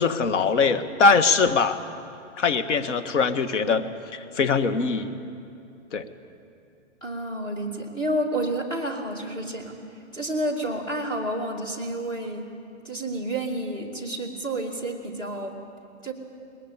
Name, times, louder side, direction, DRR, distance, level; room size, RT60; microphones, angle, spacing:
voice 1, 0.0-1.8 2.4-5.2 5.9-6.1, left 4 dB, 75° left, 10 dB, 1.6 m, -22 dB
voice 2, 7.0-9.8 10.1-12.5 12.8-15.5 16.0-16.1, right 1 dB, 10° left, 0 dB, 2.4 m, -30 dB
21.5 x 20.5 x 8.8 m, 2.6 s
hypercardioid pair, 160°, 37 cm